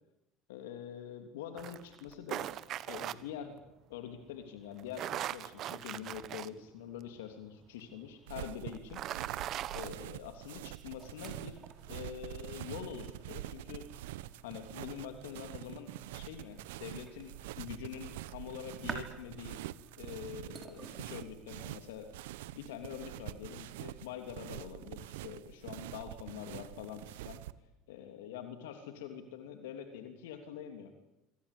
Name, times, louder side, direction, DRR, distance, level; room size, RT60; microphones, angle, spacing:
voice 1, 0.5-2.5 2.9-3.6 3.9-9.0 9.7-13.9 14.4-19.6 20.0-22.1 22.5-27.4 27.9-30.9, left 9 dB, 75° left, 6 dB, 3.1 m, -45 dB
sound 1, 1.6-3.1 4.8-6.5 7.0-7.1 8.7-9.9, right 12 dB, 55° right, 1.3 m, -39 dB
sound 2, 8.3-27.5, right 15 dB, 75° right, 1.0 m, -45 dB
sound 3, 11.0-21.0, right 5 dB, 35° right, 6.0 m, -52 dB
27.0 x 25.0 x 8.5 m, 0.94 s
hypercardioid pair, 70°, 0 cm